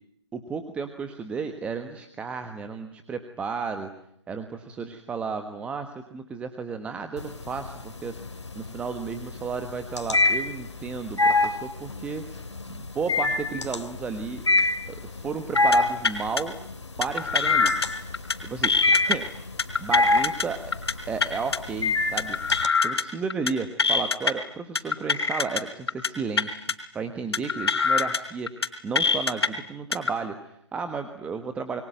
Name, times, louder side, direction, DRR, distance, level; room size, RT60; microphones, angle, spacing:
voice 1, 0.3-3.9 4.3-8.1 8.5-12.2 12.7-14.4 14.9-16.5 17.0-17.7 18.4-19.2 19.8-20.6 21.1-22.4 22.8-26.7 26.9-28.5 28.8-31.8, right 5 dB, 10° right, 8 dB, 1.4 m, -33 dB
sound 1, 7.2-7.8 8.2-22.7, left 2 dB, 80° left, 2.8 m, -24 dB
sound 2, 15.6-15.8 16.0-16.4 17.0-17.9 18.1-18.4 18.6-19.2 19.6-20.5 20.7-20.9 21.2-21.6 22.2-23.0 23.3-23.5 23.8-24.3 24.8-25.6 25.9-26.1 26.4-26.7 27.3-28.2 28.5-28.7 29.0-29.5 29.9-30.1, left 5 dB, 60° left, 4.1 m, -24 dB
28.0 x 23.0 x 9.3 m, 0.74 s
figure-of-eight pair, 145°, 15 cm